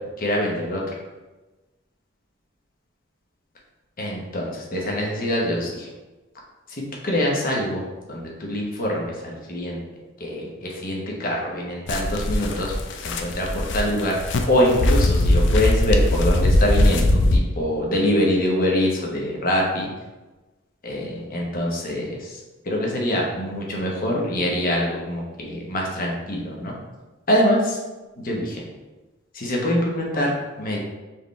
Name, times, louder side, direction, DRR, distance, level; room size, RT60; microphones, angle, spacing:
voice 1, 0.2-0.8 4.0-5.9 6.7-7.8 8.1-9.8 10.2-19.9 20.8-22.4 22.6-26.7 27.3-27.8 28.2-28.6 29.3-30.8, left 1 dB, 50° left, -2 dB, 1.0 m, -24 dB
sound 1, 11.9-17.4, left 1 dB, 65° left, 0.5 m, -20 dB
4.8 x 3.4 x 3.2 m, 1.2 s
head